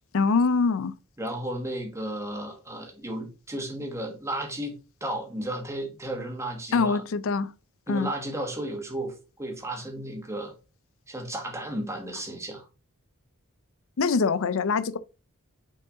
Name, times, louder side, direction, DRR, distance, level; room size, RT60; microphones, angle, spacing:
voice 1, 0.1-0.9 6.7-7.5 7.9-8.1 14.0-15.0, left 4 dB, 65° left, 0.5 m, -24 dB
voice 2, 1.2-4.7 5.0-7.0 7.9-9.1 9.4-10.5 11.1-12.7, right 1 dB, 15° right, 1.5 m, -33 dB
6.0 x 4.7 x 3.6 m
head